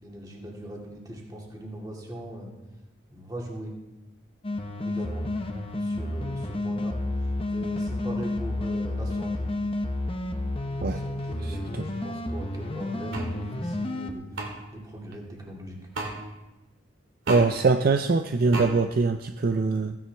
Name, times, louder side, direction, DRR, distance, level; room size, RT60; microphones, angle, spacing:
voice 1, 0.0-2.5 3.1-3.7 4.8-5.3 5.7-7.0 7.5-9.5 10.6-15.8, right 1 dB, 20° right, -2 dB, 2.2 m, -40 dB
sound 1, 4.4-14.1, left 1 dB, 25° left, 0.8 m, -30 dB
voice 2, 11.4-11.8 17.3-20.0, right 4 dB, 45° right, 7 dB, 0.4 m, -23 dB
sound 2, 13.1-13.3 14.4-14.5 15.9-16.1 17.3-17.5 18.5-18.7, right 2 dB, 80° right, 2.2 m, -31 dB
15.5 x 9.7 x 3.4 m, 1.1 s
head